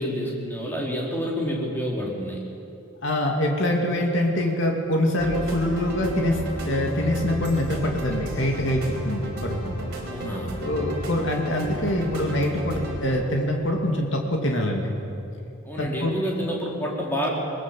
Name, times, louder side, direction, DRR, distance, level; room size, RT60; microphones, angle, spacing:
voice 1, 0.0-2.4 10.1-10.6 15.6-17.3, equal, 10° left, -3 dB, 3.8 m, -28 dB
voice 2, 3.0-9.7 10.6-14.9 15.8-16.1, left 1 dB, 60° left, 1 dB, 2.6 m, -24 dB
sound 1, 5.2-13.0, right 1 dB, 50° right, 4.6 m, -32 dB
21.5 x 21.0 x 7.5 m, 2.7 s
head